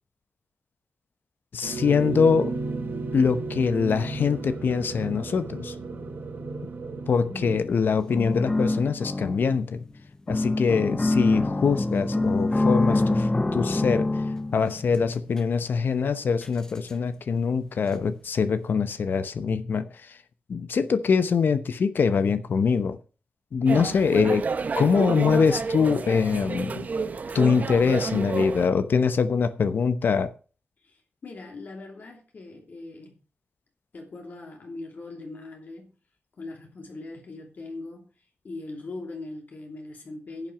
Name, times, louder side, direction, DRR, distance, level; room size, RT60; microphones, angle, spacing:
voice 1, 1.5-2.5 3.1-5.7 7.1-9.8 10.3-14.1 14.5-19.9 20.5-23.0 23.5-24.4 24.8-26.9 27.3-30.3, left 5 dB, 75° left, 0.9 m, -23 dB
sound 1, 1.6-7.6, right 3 dB, 85° right, 3.9 m, -33 dB
voice 2, 7.3-7.6 23.8-24.3 30.8-33.2 33.9-35.9 36.4-38.1 38.4-40.5, left 2 dB, 60° left, 2.9 m, -40 dB
sound 2, 7.5-7.8 8.1-9.8 10.3-15.4 16.4-16.5 16.9-17.0, left 2 dB, 20° left, 0.8 m, -25 dB
sound 3, 23.7-28.7, right 4 dB, 50° right, 0.8 m, -30 dB
10.5 x 7.5 x 6.2 m
wide cardioid pair, 175°, 3 cm